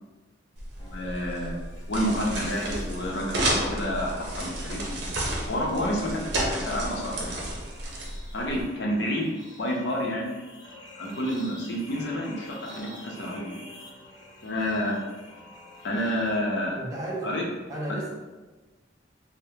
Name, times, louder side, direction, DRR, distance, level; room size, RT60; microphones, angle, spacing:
sound 1, 0.6-8.6, right 1 dB, 60° right, 0.7 m, -32 dB
voice 1, 0.8-1.6 1.9-5.1 5.5-7.6 8.3-9.3 9.6-10.3 11.0-13.6 14.4-15.0 15.8-16.8 17.2-17.4, equal, 65° left, -2 dB, 0.7 m, -29 dB
sound 2, 0.8-16.4, left 1 dB, 20° left, 0.5 m, -49 dB
voice 2, 16.7-17.3 17.7-18.1, right 1 dB, 15° right, -5 dB, 0.6 m, -33 dB
3.4 x 2.1 x 2.7 m, 1.2 s
head